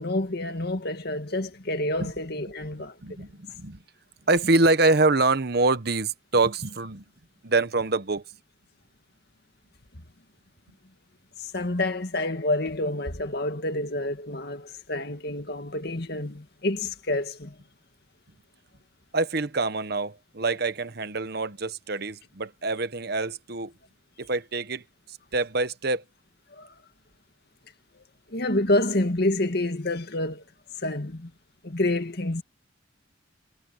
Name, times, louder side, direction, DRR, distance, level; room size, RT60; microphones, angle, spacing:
voice 1, 0.0-3.2 11.4-17.6 26.5-26.7 28.3-30.4 30.8-31.3 31.6-32.4, left 1 dB, 55° left, 2.0 m, -28 dB
voice 2, 3.0-3.8 4.3-7.0 7.4-8.2 19.1-23.7 24.2-24.8 25.3-26.0, right 3 dB, 55° right, 1.1 m, -25 dB
head